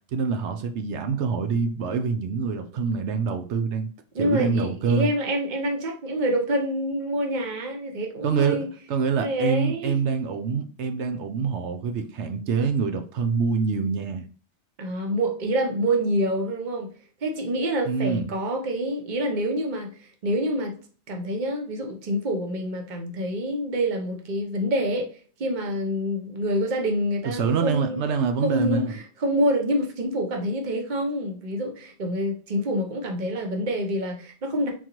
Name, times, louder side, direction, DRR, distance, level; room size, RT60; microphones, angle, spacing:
voice 1, 0.1-3.9 4.2-5.1 8.2-8.6 8.9-14.2 17.9-18.3 27.2-28.9, right 5 dB, 75° right, 1.0 m, -25 dB
voice 2, 4.1-8.7 9.2-9.9 14.8-16.9 17.2-19.9 20.2-20.7 21.1-25.1 25.4-28.0 28.4-34.7, equal, 45° right, 1.0 m, -26 dB
4.4 x 3.8 x 3.0 m
omnidirectional pair, 1.2 m